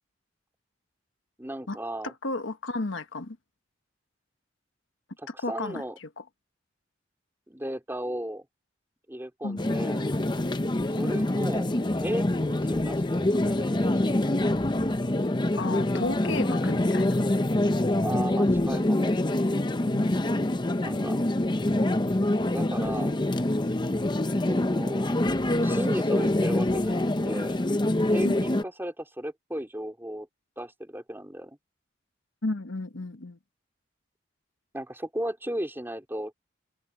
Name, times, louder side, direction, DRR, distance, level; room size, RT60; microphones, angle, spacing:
voice 1, 1.4-2.1 5.2-6.0 7.5-8.5 9.1-10.1 11.0-14.4 18.0-19.1 20.8-21.3 22.5-23.2 24.5-25.3 25.6-27.6 28.1-30.3 30.6-31.6 34.7-36.3, right 1 dB, 10° right, 3.6 m, -35 dB
voice 2, 2.0-3.4 5.4-6.2 9.4-9.6 15.6-17.2 28.2-28.4 32.4-33.4, left 2 dB, 75° left, 1.4 m, -33 dB
sound 1, 9.6-28.6, left 1 dB, 25° left, 0.7 m, -25 dB
head